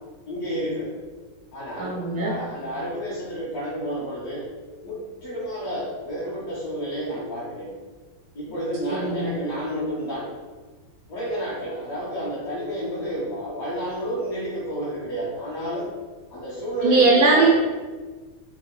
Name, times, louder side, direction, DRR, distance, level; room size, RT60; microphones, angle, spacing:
voice 1, 0.3-1.0 1.5-4.5 4.8-7.7 8.3-10.3 11.1-15.9 16.3-17.5, equal, 55° left, -9 dB, 1.3 m, -30 dB
voice 2, 1.8-2.3 8.9-9.3 16.8-17.5, right 3 dB, 80° right, -2 dB, 0.8 m, -19 dB
4.6 x 2.8 x 3.1 m, 1.4 s
omnidirectional pair, 2.1 m